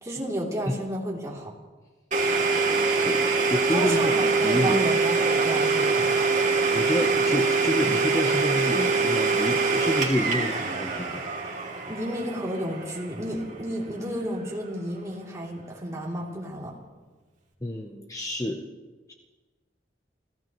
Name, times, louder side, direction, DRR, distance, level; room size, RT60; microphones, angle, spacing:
voice 1, 0.0-1.5 3.7-6.2 11.9-16.7, right 1 dB, 20° right, -4 dB, 3.0 m, -32 dB
Domestic sounds home sounds, 2.1-13.8, right 4 dB, 45° right, 2.6 m, -24 dB
voice 2, 2.7-4.1 4.4-4.9 6.7-11.2 17.6-18.7 19.1-19.2, left 1 dB, 20° left, 2 dB, 0.9 m, -29 dB
29.0 x 15.5 x 3.1 m, 1.3 s
head